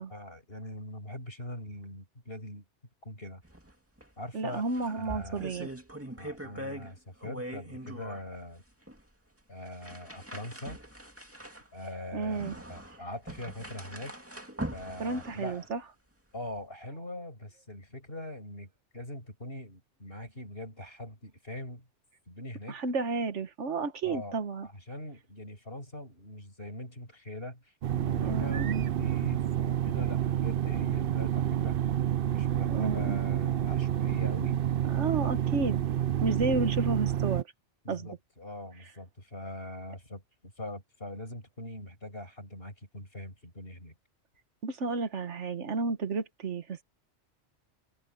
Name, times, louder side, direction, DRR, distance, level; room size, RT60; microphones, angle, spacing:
voice 1, 0.0-2.6 3.0-3.4 4.2-4.6 4.9-5.5 6.2-8.6 9.5-10.8 11.7-12.4 12.7-14.1 14.7-15.7 16.3-21.9 22.3-22.8 24.0-24.4 24.6-31.8 32.2-34.6 36.2-36.4 37.8-43.9, left 1 dB, 55° left, 7.2 m, -42 dB
sound 1, 3.4-3.7 4.0-4.1 4.5-6.9 7.2-8.2 8.9-9.0 9.7-15.7, right 1 dB, 10° right, 2.3 m, -42 dB
voice 2, 4.3-5.7 12.1-12.6 15.0-15.8 22.7-24.7 28.2-28.9 32.6-33.2 34.9-35.8 36.2-37.5 37.9-38.1 44.6-46.8, right 3 dB, 75° right, 1.6 m, -31 dB
sound 2, 27.8-37.4, right 11 dB, 60° right, 0.7 m, -29 dB
omnidirectional pair, 1.2 m